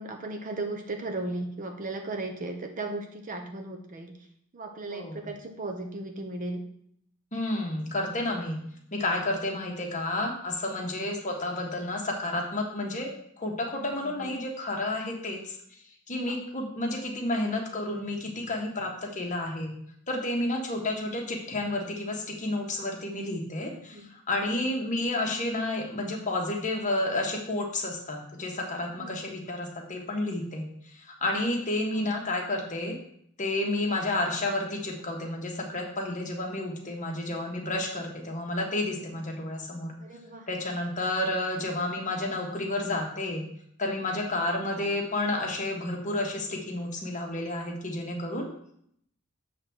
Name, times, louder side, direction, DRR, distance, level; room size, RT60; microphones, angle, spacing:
voice 1, 0.0-4.2 4.5-6.7 10.8-11.0 13.7-14.3 16.2-16.4 23.7-24.1 24.4-24.6 29.0-29.2 32.0-32.1 38.9-39.0 40.0-40.5, right 2 dB, 35° right, 4 dB, 0.8 m, -36 dB
voice 2, 4.9-5.3 7.3-8.6 8.9-13.1 13.4-15.5 16.1-19.7 20.1-24.0 24.3-30.7 30.9-33.0 33.4-39.9 40.5-43.4 43.8-48.5, left 2 dB, 35° left, 1 dB, 1.3 m, -31 dB
7.8 x 3.4 x 6.2 m, 0.69 s
head